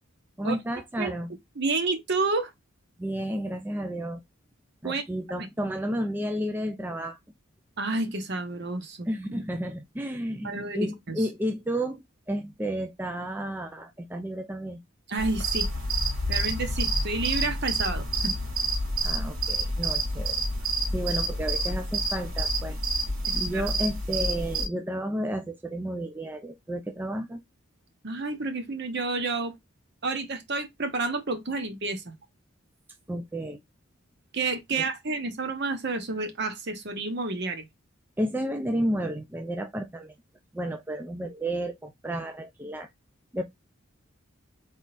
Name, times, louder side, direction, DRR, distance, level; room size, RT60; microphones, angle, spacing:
voice 1, 0.4-1.3 3.0-4.2 4.8-7.2 9.1-14.8 19.0-20.4 20.9-22.8 23.3-27.4 33.1-33.6 34.7-34.9 38.2-40.1 40.5-42.9 43.3-43.4, right 1 dB, 10° right, 0.3 m, -32 dB
voice 2, 1.6-2.5 4.8-5.0 7.8-9.4 10.4-11.2 15.1-15.7 16.3-18.3 23.3-23.6 28.0-29.6 30.0-32.1 34.3-37.6, right 3 dB, 50° right, 0.9 m, -30 dB
sound 1, 15.2-24.7, right 2 dB, 80° right, 3.2 m, -28 dB
4.1 x 3.6 x 2.5 m
head